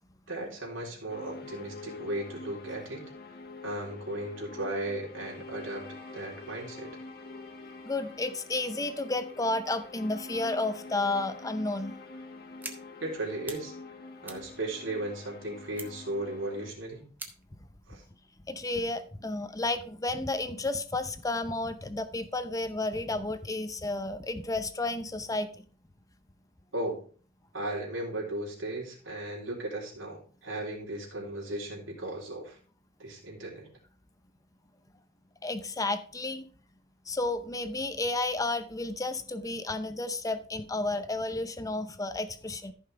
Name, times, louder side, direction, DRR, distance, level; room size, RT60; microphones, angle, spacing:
voice 1, 0.3-3.0 3.6-7.0 13.0-13.7 14.2-17.0 17.9-18.0 26.7-27.0 27.5-32.6 33.0-33.7, right 1 dB, 85° right, -3 dB, 3.7 m, -36 dB
sound 1, 1.1-16.7, left 3 dB, 55° left, 1.5 m, -46 dB
voice 2, 7.8-11.9 18.5-25.5 35.4-36.4 37.1-42.7, left 2 dB, 20° left, 10 dB, 0.7 m, -32 dB
sound 2, 12.6-12.8 13.2-13.6 13.9-15.3 15.7-16.1 16.5-16.6 17.2-17.6, right 2 dB, 10° right, 1.1 m, -43 dB
14.0 x 5.6 x 3.4 m, 0.42 s
head